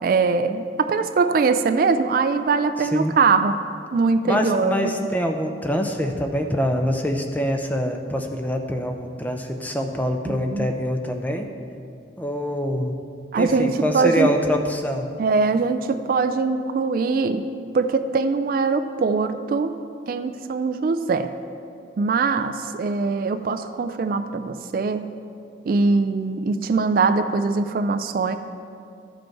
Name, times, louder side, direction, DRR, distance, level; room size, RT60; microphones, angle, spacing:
voice 1, 0.0-3.6 3.9-4.8 10.3-10.7 13.3-14.3 15.2-17.5 17.7-19.8 20.1-21.3 22.0-25.1 25.7-28.4, right 4 dB, 50° right, 9 dB, 0.3 m, -22 dB
voice 2, 4.3-11.5 12.2-13.0 13.4-15.1, equal, 10° left, 4 dB, 0.5 m, -25 dB
13.5 x 5.2 x 4.5 m, 2.5 s
head